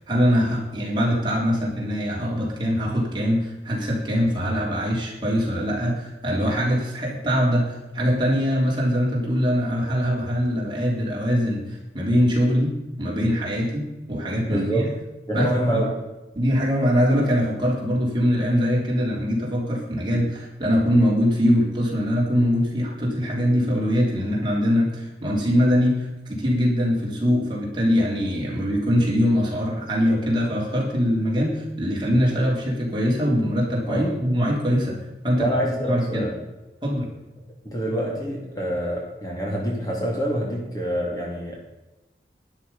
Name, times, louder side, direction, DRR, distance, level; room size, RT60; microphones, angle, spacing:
voice 1, 0.1-14.9 15.3-15.8 16.3-35.5 35.9-36.3 36.8-37.1, equal, 25° right, -3 dB, 3.5 m, -22 dB
voice 2, 14.5-14.9 15.3-15.9 33.9-34.2 35.3-36.4 37.6-41.6, right 1 dB, 20° left, -2 dB, 2.8 m, -26 dB
12.5 x 11.0 x 5.6 m, 1.0 s
head